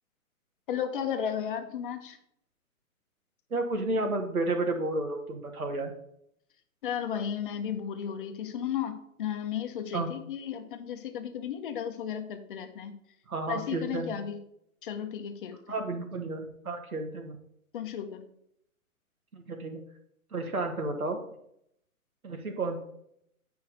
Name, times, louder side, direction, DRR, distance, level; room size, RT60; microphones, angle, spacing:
voice 1, 0.7-2.2 6.8-12.9 13.5-14.4 14.8-15.6 17.7-18.3, left 8 dB, 35° left, 7 dB, 0.9 m, -34 dB
voice 2, 3.5-5.9 9.9-10.1 13.3-14.2 15.7-17.4 19.3-19.8 20.3-21.2 22.2-22.8, right 2 dB, 80° right, 4 dB, 1.6 m, -31 dB
8.4 x 5.6 x 4.1 m, 0.74 s
figure-of-eight pair, 130°, 43 cm